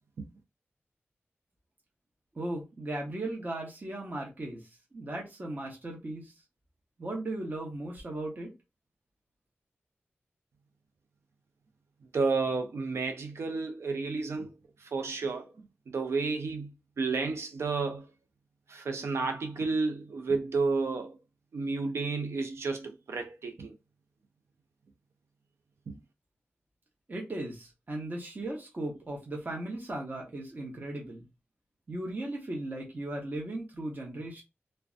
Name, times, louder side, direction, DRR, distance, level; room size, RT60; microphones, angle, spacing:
voice 1, 2.3-6.3 7.0-8.5 27.1-31.2 31.9-34.4, right 1 dB, 40° right, 0.9 m, -37 dB
voice 2, 12.1-14.5 14.9-15.5 15.9-18.1 18.7-21.2 21.5-23.7 25.9-26.0, right 4 dB, 85° right, 0.5 m, -31 dB
2.5 x 2.1 x 2.4 m
wide cardioid pair, 80°, 4 cm